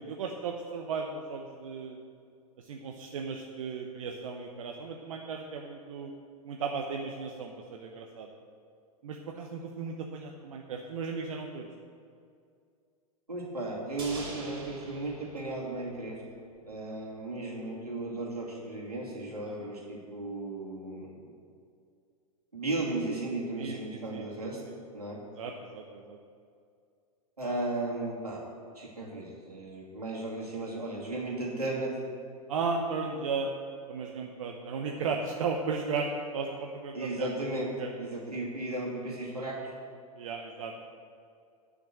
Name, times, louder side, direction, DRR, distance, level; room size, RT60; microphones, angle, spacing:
voice 1, 0.0-2.0 2.6-6.1 6.4-8.3 9.0-11.7 19.5-19.7 23.6-24.2 25.4-26.2 32.5-33.5 33.9-37.3 37.8-37.9 40.2-40.9, right 5 dB, 60° right, 2 dB, 0.9 m, -35 dB
voice 2, 13.3-16.2 16.6-21.2 22.5-24.6 24.9-25.2 27.4-28.4 28.7-32.0 36.9-37.7 38.0-39.7, right 2 dB, 85° right, -3 dB, 2.7 m, -35 dB
sound 1, 14.0-16.4 16.6-16.7, right 2 dB, 25° right, 2.9 m, -45 dB
10.5 x 6.3 x 7.8 m, 2.3 s
figure-of-eight pair, 100°, 19 cm